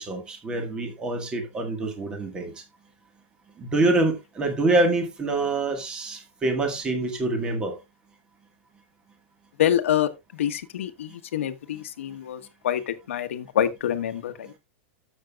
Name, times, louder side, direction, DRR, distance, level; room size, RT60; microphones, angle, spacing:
voice 1, 0.0-2.6 3.6-7.8, right 2 dB, 10° right, 1.6 m, -25 dB
voice 2, 9.6-10.1 10.4-14.5, left 10 dB, 85° left, 1.1 m, -26 dB
13.0 x 7.3 x 2.4 m
supercardioid pair, 175°, 7 cm